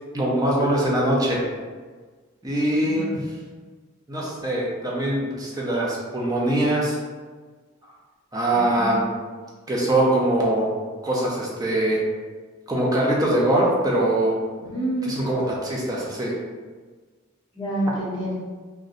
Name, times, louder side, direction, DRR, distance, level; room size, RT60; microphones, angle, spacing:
voice 1, 0.1-1.4 2.4-3.2 4.1-7.0 8.3-9.1 9.7-10.7 11.0-12.0 12.7-14.4 15.0-16.3, right 1 dB, 20° right, -4 dB, 0.6 m, -22 dB
voice 2, 2.7-3.1 8.5-8.9 14.7-15.2 17.5-18.3, right 1 dB, 25° left, -9 dB, 1.2 m, -28 dB
2.6 x 2.2 x 3.8 m, 1.4 s
head